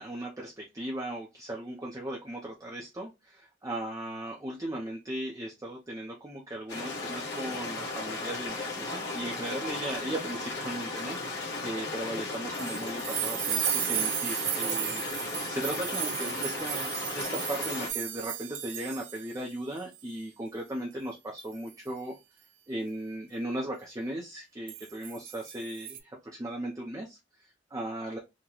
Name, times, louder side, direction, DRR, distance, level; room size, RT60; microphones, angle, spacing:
voice 1, 0.0-22.2 22.7-28.2, right 1 dB, 20° right, -1 dB, 0.5 m, -37 dB
Stream, 6.7-17.9, left 3 dB, 65° left, 1.2 m, -36 dB
sound 1, 12.5-19.5 19.8-20.0 21.4-21.7 24.7-26.0, right 10 dB, 90° right, 0.6 m, -34 dB
3.8 x 2.1 x 2.9 m, 0.23 s
head